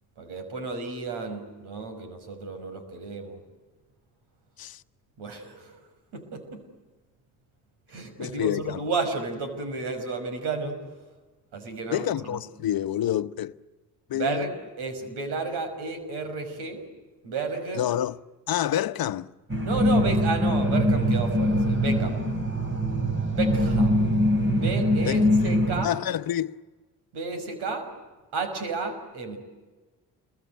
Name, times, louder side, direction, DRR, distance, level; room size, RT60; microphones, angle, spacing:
voice 1, 0.2-3.4 5.2-5.8 6.1-6.6 7.9-10.8 11.5-12.4 14.1-16.8 17.2-17.8 19.6-22.2 23.3-24.1 24.6-25.9 27.1-27.9 28.3-29.4, right 4 dB, 85° right, 5.6 m, -32 dB
voice 2, 8.2-8.8 11.9-13.6 14.1-14.5 17.7-18.2 18.5-19.3 25.0-25.2 25.8-26.6, left 11 dB, 65° left, 1.0 m, -28 dB
sound 1, 19.5-25.8, equal, 30° right, 3.9 m, -23 dB
28.5 x 22.5 x 9.2 m
supercardioid pair, 55°, 39 cm